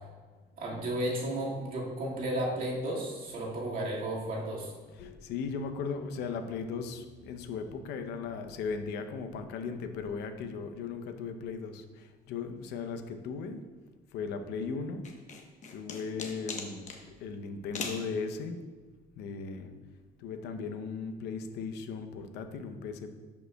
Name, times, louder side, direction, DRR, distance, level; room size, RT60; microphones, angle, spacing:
voice 1, 0.6-4.7, right 1 dB, 55° right, -4 dB, 1.9 m, -33 dB
voice 2, 4.8-13.6 14.1-15.1 15.7-16.9 17.2-18.6 19.1-19.7 20.2-23.2, left 5 dB, 80° left, 7 dB, 0.7 m, -37 dB
sound 1, 15.0-17.0 17.7-18.1, left 4 dB, 45° left, 1.0 m, -39 dB
11.0 x 5.3 x 2.3 m, 1.4 s
cardioid pair, 110°, 17 cm